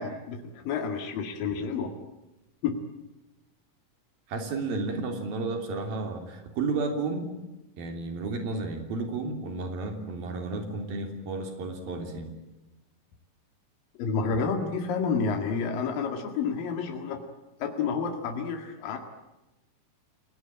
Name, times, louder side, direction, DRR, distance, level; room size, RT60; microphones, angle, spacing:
voice 1, 0.0-1.9 2.6-2.8 14.0-17.2 17.6-19.0, left 5 dB, 75° left, 4 dB, 3.7 m, -30 dB
voice 2, 4.3-7.3 7.8-12.3, right 3 dB, 90° right, 5 dB, 5.0 m, -32 dB
29.0 x 19.0 x 8.8 m, 1.0 s
omnidirectional pair, 4.0 m